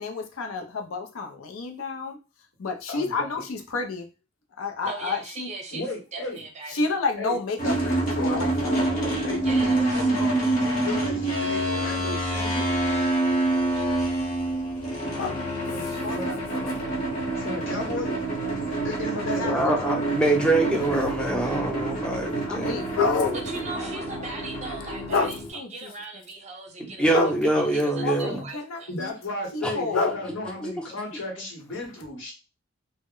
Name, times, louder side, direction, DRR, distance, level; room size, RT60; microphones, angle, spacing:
voice 1, 0.0-2.2 2.6-4.1 4.6-5.5 6.7-8.8 15.1-15.4 16.0-16.4 19.1-20.1 22.5-23.4 23.7-24.2 25.1-25.9 27.1-27.3 28.0-29.1 29.5-30.2, left 4 dB, 90° left, 4 dB, 0.5 m, -29 dB
voice 2, 2.9-3.3 5.7-6.4 7.2-7.4 8.1-12.7 15.7-16.3 17.3-18.2 18.8-20.0 28.9-32.3, left 2 dB, 65° left, 0 dB, 1.0 m, -34 dB
voice 3, 4.8-5.8 6.1-6.8 9.4-10.1 15.8-16.0 23.3-27.3 27.6-28.9, right 3 dB, 35° right, 3 dB, 0.7 m, -39 dB
sound 1, 7.6-25.5, right 2 dB, 45° left, 0.9 m, -27 dB
voice 4, 19.4-22.8 27.0-28.5 29.6-29.7 30.6-30.7, right 2 dB, 5° left, 0 dB, 0.6 m, -24 dB
2.1 x 2.0 x 3.6 m, 0.30 s
head